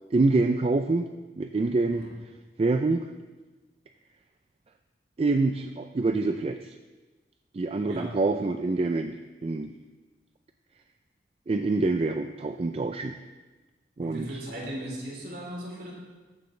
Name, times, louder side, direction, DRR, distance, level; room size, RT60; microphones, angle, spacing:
voice 1, 0.1-1.1 1.4-2.1 2.6-3.1 5.2-6.7 7.5-9.2 9.4-9.7 11.5-13.1 14.0-14.3, right 3 dB, 35° right, 7 dB, 0.3 m, -26 dB
voice 2, 14.0-15.9, equal, 60° right, -3 dB, 3.2 m, -37 dB
13.5 x 9.3 x 3.3 m, 1.3 s
head